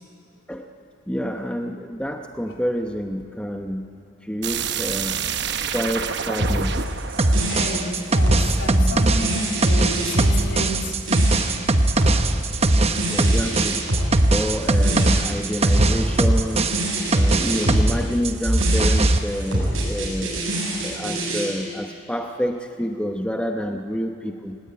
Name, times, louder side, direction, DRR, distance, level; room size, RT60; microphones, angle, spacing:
voice 1, 1.1-3.9 4.2-5.2 5.7-6.8 13.1-13.8 14.3-16.8 17.1-20.4 20.8-24.6, equal, 5° left, 4 dB, 0.9 m, -28 dB
sound 1, 4.4-9.1, right 7 dB, 60° right, 1.0 m, -29 dB
sound 2, 6.4-21.5, right 1 dB, 85° right, 8.0 m, -26 dB
sound 3, 7.2-18.0 18.2-19.2, right 2 dB, 30° right, 1.0 m, -19 dB
voice 2, 7.4-10.9 12.5-12.6 14.8-15.1, equal, 65° left, 3 dB, 4.0 m, -31 dB
27.0 x 18.0 x 9.5 m, 2.4 s
head